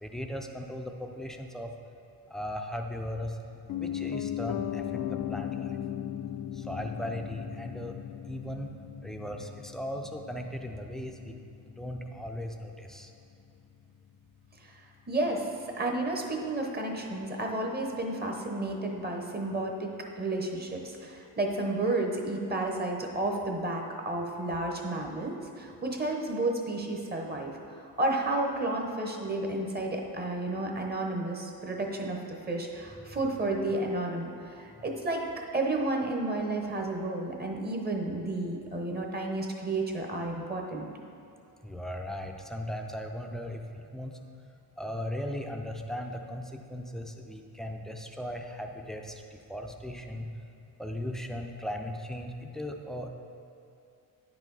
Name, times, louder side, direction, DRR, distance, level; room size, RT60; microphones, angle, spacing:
voice 1, 0.0-1.7 2.3-3.4 3.8-5.8 6.5-8.0 8.3-8.7 9.0-11.4 11.7-13.1 41.6-44.1 44.8-50.3 50.8-53.1, equal, ahead, 3 dB, 0.5 m, -37 dB
Piano, 3.7-13.7 14.0-14.1, left 11 dB, 55° left, 0.4 m, -38 dB
voice 2, 15.1-27.6 28.0-35.2 35.5-40.9, right 2 dB, 25° right, 1 dB, 0.9 m, -31 dB
9.3 x 4.9 x 4.0 m, 2.6 s
cardioid pair, 95°, 39 cm